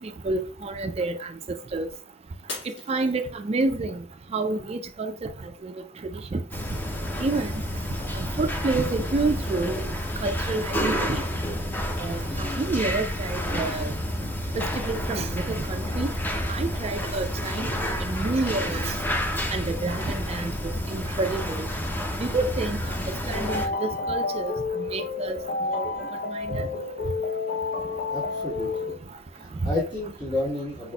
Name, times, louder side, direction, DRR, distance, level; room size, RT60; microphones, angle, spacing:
voice 1, 0.0-1.3 1.7-1.9 2.9-4.0 4.3-5.3 5.6-5.7 6.3-6.4 7.2-7.5 8.1-9.8 10.2-11.2 12.0-13.9 14.5-16.1 16.5-17.7 18.0-19.0 19.5-20.5 20.9-21.7 22.2-22.8 23.3-24.5 24.9-25.4 25.7-25.9 26.3-26.7 29.6-29.7, right 3 dB, 35° right, 0.3 m, -28 dB
Shatter, 2.5-3.8 4.3-4.8 5.3-5.4, left 2 dB, 70° left, 1.5 m, -39 dB
sound 1, 6.5-23.7, left 1 dB, 10° left, 0.6 m, -30 dB
sound 2, 23.3-29.0, left 3 dB, 50° left, 0.6 m, -30 dB
voice 2, 28.1-29.0 29.3-30.9, left 2 dB, 30° left, 1.4 m, -31 dB
4.8 x 4.1 x 2.3 m
head